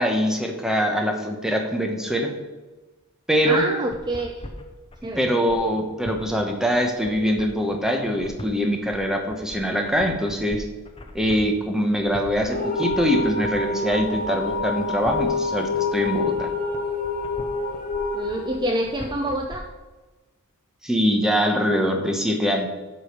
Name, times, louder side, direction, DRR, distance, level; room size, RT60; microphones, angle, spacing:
voice 1, 0.0-2.3 3.3-3.6 5.2-10.6 11.1-16.5 20.8-22.7, equal, ahead, 3 dB, 1.0 m, -23 dB
voice 2, 3.4-4.6 5.0-5.3 18.1-19.6, right 1 dB, 20° right, 3 dB, 0.5 m, -27 dB
sound 1, 3.5-19.6, left 1 dB, 25° left, 0.9 m, -40 dB
sound 2, 12.5-19.4, left 3 dB, 40° left, 1.9 m, -27 dB
8.1 x 5.0 x 6.6 m, 1.2 s
head